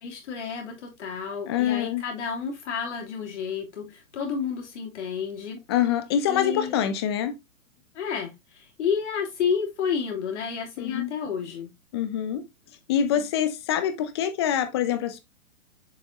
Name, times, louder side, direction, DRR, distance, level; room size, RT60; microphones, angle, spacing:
voice 1, 0.0-5.6 6.3-6.9 7.9-11.7 13.1-13.2, left 6 dB, 50° left, 3.0 m, -31 dB
voice 2, 1.5-2.0 5.7-7.4 10.8-11.1 11.9-12.4 12.9-15.2, left 9 dB, 20° left, 0.5 m, -25 dB
6.9 x 5.1 x 2.8 m
hypercardioid pair, 125°, 43 cm